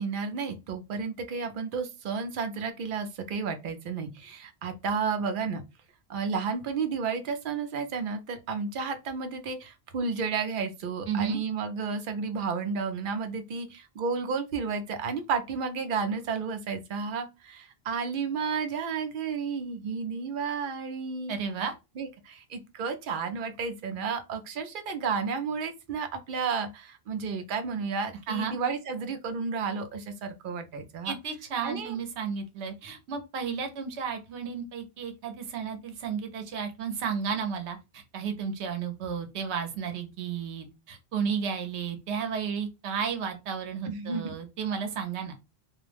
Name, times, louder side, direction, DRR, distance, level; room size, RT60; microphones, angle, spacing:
voice 1, 0.0-5.6 6.1-21.4 22.0-31.1 31.6-31.9 43.9-44.3, right 5 dB, 60° right, 0.6 m, -32 dB
voice 2, 11.1-11.4 21.3-21.7 28.3-28.6 31.0-45.4, right 6 dB, 85° right, 0.9 m, -33 dB
2.3 x 2.1 x 3.2 m
omnidirectional pair, 1.1 m